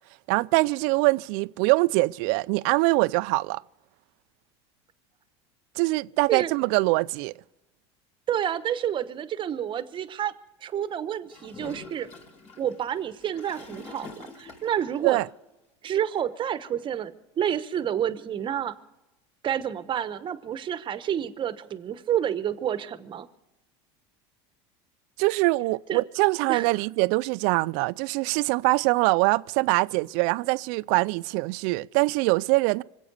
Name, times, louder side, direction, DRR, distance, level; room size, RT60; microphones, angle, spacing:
voice 1, 0.3-3.6 5.8-7.3 15.0-15.3 25.2-32.8, right 24 dB, 65° right, 0.4 m, -23 dB
voice 2, 8.3-10.3 10.6-12.1 12.6-15.2 15.8-18.7 19.4-23.3 25.9-26.0 26.5-26.7, right 9 dB, 35° right, 1.0 m, -29 dB
Gurgling / Toilet flush, 11.3-15.0, left 3 dB, 50° left, 4.5 m, -45 dB
25.0 x 8.3 x 6.7 m
supercardioid pair, 100°, 14 cm